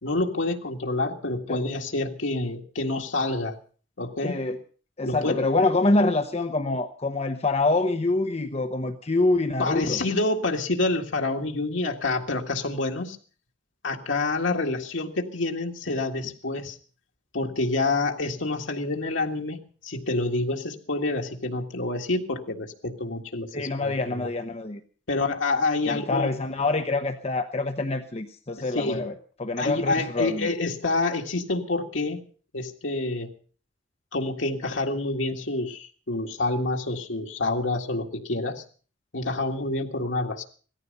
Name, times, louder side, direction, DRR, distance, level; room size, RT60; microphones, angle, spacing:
voice 1, 0.0-3.6 4.0-4.4 5.0-5.4 9.6-13.2 13.8-16.8 17.3-19.6 19.8-24.3 25.1-26.3 28.6-29.1 29.6-32.2 32.5-33.3 34.1-38.6 39.1-40.4, left 2 dB, 85° left, 2 dB, 1.9 m, -27 dB
voice 2, 4.2-4.6 5.0-10.0 23.5-24.8 25.9-29.1 29.4-30.5, left 2 dB, 35° left, 7 dB, 0.9 m, -25 dB
17.5 x 14.0 x 5.3 m, 0.41 s
head